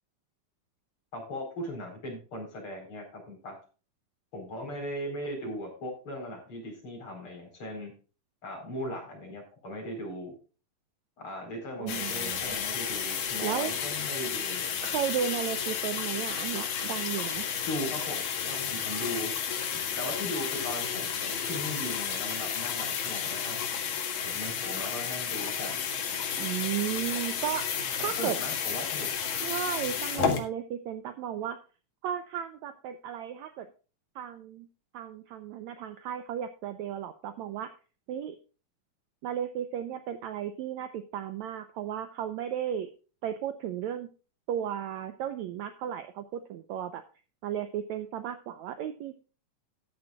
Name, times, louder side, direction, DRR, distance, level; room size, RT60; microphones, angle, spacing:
voice 1, 1.1-3.5 4.3-7.9 8.4-10.3 11.2-14.8 17.7-19.3 20.0-23.6 24.2-25.8 28.2-29.1, equal, 35° left, 2 dB, 4.9 m, -38 dB
voice 2, 11.8-12.6 13.4-13.7 14.8-17.5 26.4-28.4 29.3-31.6 32.0-33.7 34.2-34.7 34.9-37.7 38.1-38.4 39.2-42.9 43.2-44.1 44.5-47.0 47.4-49.2, right 10 dB, 80° right, 10 dB, 1.7 m, -34 dB
sound 1, 11.9-30.4, left 7 dB, 75° left, 3.3 m, -32 dB
14.0 x 10.5 x 2.4 m, 0.35 s
omnidirectional pair, 4.0 m